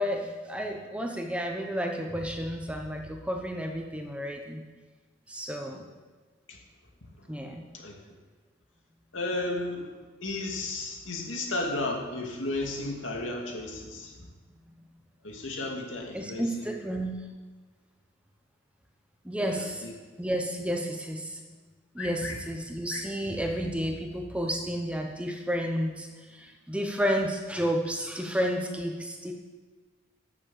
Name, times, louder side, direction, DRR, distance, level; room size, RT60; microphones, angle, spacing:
voice 1, 0.0-4.6 5.3-5.8 7.3-7.6 16.1-17.3 19.2-19.9 20.2-21.4 21.9-29.3, equal, 5° right, 3 dB, 0.9 m, -31 dB
voice 2, 9.1-9.9 10.2-14.1 15.2-16.7 19.4-19.9 22.0-22.4 22.9-23.0, left 2 dB, 75° left, 1 dB, 2.3 m, -34 dB
11.5 x 7.5 x 7.6 m, 1.3 s
head